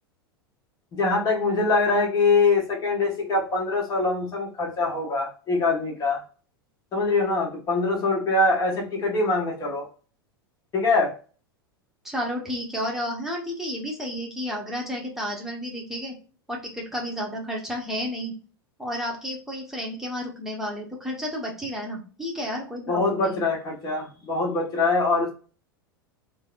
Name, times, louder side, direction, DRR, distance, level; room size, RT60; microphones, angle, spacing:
voice 1, 0.9-6.2 6.9-9.8 10.7-11.1 22.9-25.3, left 3 dB, 30° left, -1 dB, 1.2 m, -23 dB
voice 2, 12.0-16.1 16.5-18.3 18.8-23.5, equal, 5° right, -2 dB, 1.0 m, -31 dB
3.3 x 2.2 x 2.3 m, 0.38 s
figure-of-eight pair, 85°, 12 cm